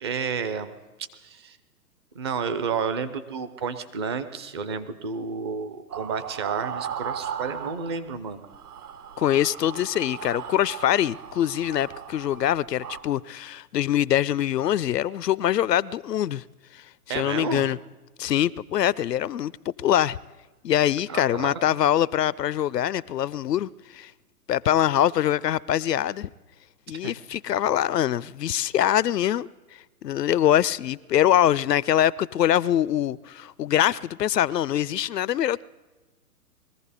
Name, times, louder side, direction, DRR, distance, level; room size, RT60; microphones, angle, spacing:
voice 1, 0.0-0.7 1.2-1.6 2.1-8.4 17.1-17.7 21.1-21.6 27.0-27.1, right 5 dB, 20° right, 0.5 m, -31 dB
sound 1, 5.9-8.2 8.4-13.0, right 8 dB, 70° right, 1.7 m, -37 dB
voice 2, 9.2-16.4 16.7-16.8 17.1-17.8 18.2-20.2 20.6-24.1 24.5-26.3 26.9-29.5 30.0-35.6, left 11 dB, 85° left, 0.6 m, -23 dB
21.5 x 14.5 x 4.2 m
hypercardioid pair, 130°, 47 cm